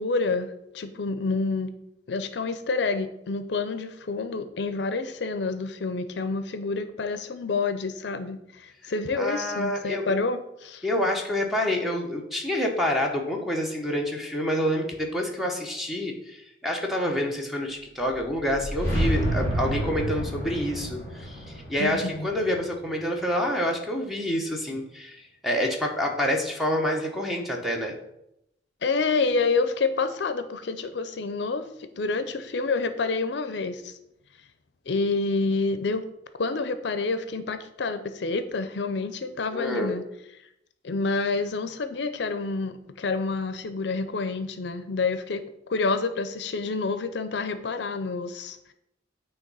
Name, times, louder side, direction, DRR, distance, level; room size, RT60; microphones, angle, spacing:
voice 1, 0.0-1.7 2.1-10.8 21.8-22.3 28.8-34.0 34.9-36.0 36.4-40.0 40.8-45.4 45.7-48.7, left 3 dB, 65° left, 10 dB, 0.5 m, -28 dB
voice 2, 9.1-10.1 10.8-27.9 39.5-40.0, equal, ahead, 0 dB, 1.1 m, -27 dB
sound 1, 18.1-23.2, right 1 dB, 15° left, 3.1 m, -30 dB
8.7 x 3.2 x 5.5 m, 0.81 s
head